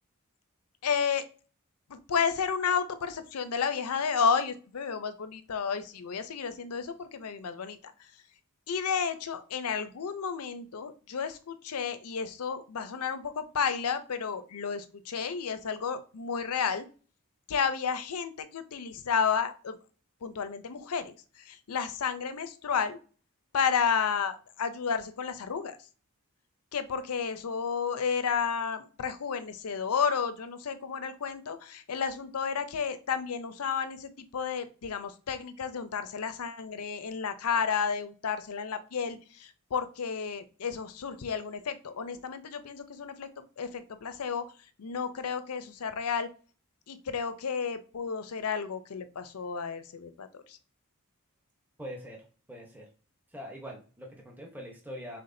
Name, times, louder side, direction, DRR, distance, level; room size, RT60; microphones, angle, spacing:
voice 1, 0.8-1.2 1.9-8.1 8.7-16.9 17.5-19.8 20.2-23.0 23.5-25.8 26.7-43.3 43.6-44.4 44.8-46.3 46.9-50.6, left 6 dB, 80° left, 11 dB, 0.6 m, -32 dB
voice 2, 51.8-52.9 53.3-55.2, equal, 10° right, 1 dB, 0.8 m, -43 dB
5.7 x 3.5 x 2.6 m, 0.38 s
head